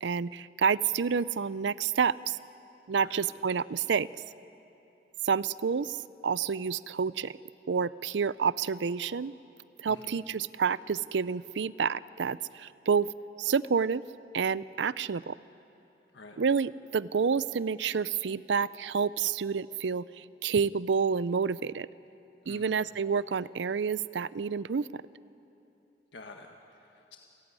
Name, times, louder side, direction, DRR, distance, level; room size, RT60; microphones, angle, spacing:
voice 1, 0.0-2.4 2.9-4.1 5.2-6.0 6.2-7.3 7.7-9.3 9.8-13.1 13.4-14.0 14.3-15.4 16.4-21.9 22.5-24.9, right 6 dB, 85° right, 19 dB, 0.5 m, -29 dB
voice 2, 9.9-10.2 16.1-16.4 22.4-22.8 26.1-27.2, left 3 dB, 90° left, 3 dB, 1.5 m, -49 dB
29.5 x 15.0 x 9.7 m, 2.9 s
head